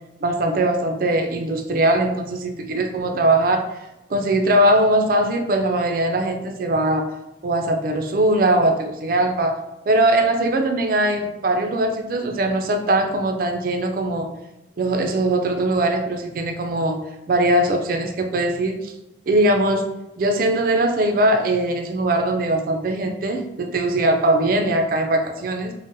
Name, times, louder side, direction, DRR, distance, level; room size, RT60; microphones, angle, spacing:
voice 1, 0.2-3.6 4.1-7.1 7.4-9.5 9.9-14.3 14.8-18.9 19.3-19.8 20.2-25.7, right 1 dB, 50° right, 4 dB, 0.3 m, -20 dB
3.7 x 2.0 x 2.6 m, 0.95 s
head